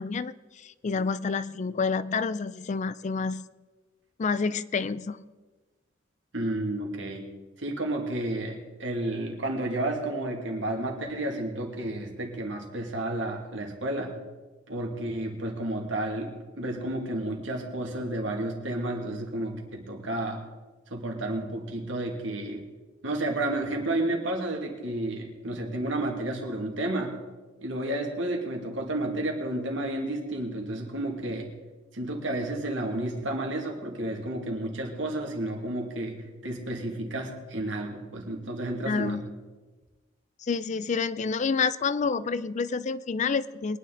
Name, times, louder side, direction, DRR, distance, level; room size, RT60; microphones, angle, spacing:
voice 1, 0.0-3.5 4.2-5.2 38.9-39.2 40.4-43.8, left 5 dB, 40° left, 16 dB, 0.4 m, -28 dB
voice 2, 6.3-7.3 7.6-14.2 14.7-20.5 20.9-22.7 23.0-27.2 27.6-31.5 31.9-39.2, right 1 dB, 75° right, 1 dB, 2.3 m, -31 dB
22.0 x 10.0 x 3.9 m, 1.2 s
head